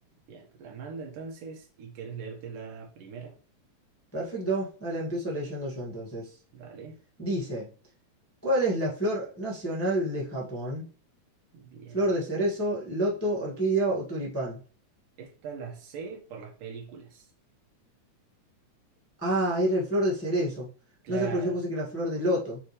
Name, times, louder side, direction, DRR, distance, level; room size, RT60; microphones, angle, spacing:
voice 1, 0.3-3.3 6.5-7.0 11.5-12.0 15.2-17.3 21.0-21.6, right 6 dB, 90° right, 1 dB, 3.1 m, -40 dB
voice 2, 4.1-6.3 7.2-7.7 8.4-10.9 11.9-14.6 19.2-20.7 21.1-22.6, right 1 dB, 5° left, -5 dB, 1.2 m, -28 dB
7.8 x 4.3 x 3.3 m, 0.39 s
omnidirectional pair, 3.6 m